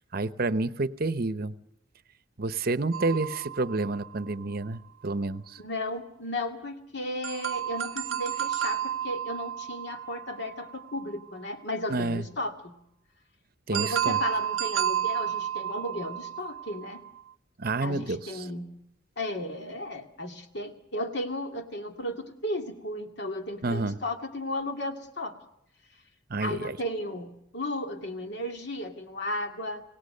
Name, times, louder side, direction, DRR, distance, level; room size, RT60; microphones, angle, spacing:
voice 1, 0.1-1.5 2.4-5.6 11.9-12.3 13.7-14.2 17.6-18.5 23.6-24.0 26.3-26.8, right 3 dB, 50° right, 13 dB, 0.9 m, -29 dB
sound 1, 2.9-4.6 7.2-11.1 13.7-17.2, right 10 dB, 85° right, 0.9 m, -32 dB
voice 2, 5.6-12.7 13.7-17.0 17.8-18.6 19.2-25.4 26.4-29.8, left 1 dB, 60° left, 5 dB, 2.2 m, -34 dB
26.5 x 17.5 x 6.7 m, 0.80 s
head